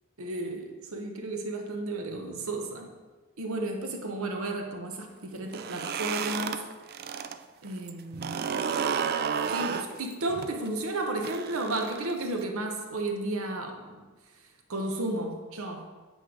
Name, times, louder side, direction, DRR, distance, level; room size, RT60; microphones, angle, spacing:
voice 1, 0.2-2.9 3.4-6.6 7.6-8.7 9.5-14.0 14.7-15.9, right 2 dB, 70° right, 3 dB, 1.0 m, -33 dB
sound 1, 5.4-7.4 7.7-12.4, right 7 dB, 45° right, 0.3 m, -32 dB
8.1 x 3.3 x 6.2 m, 1.3 s
head